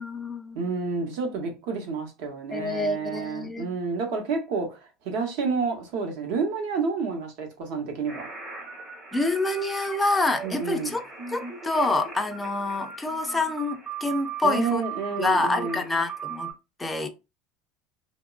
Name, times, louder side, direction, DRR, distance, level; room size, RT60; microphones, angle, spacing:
voice 1, 0.0-0.6 2.5-3.7 9.1-11.0 11.3-14.8 15.2-16.5 16.8-17.1, left 2 dB, 10° left, 0.3 m, -27 dB
voice 2, 0.5-8.3 10.4-11.0 14.4-15.8, right 4 dB, 60° right, 0.8 m, -29 dB
sound 1, 8.1-16.5, right 6 dB, 30° right, 0.9 m, -38 dB
2.9 x 2.2 x 2.3 m
cardioid pair, 155°, 0 cm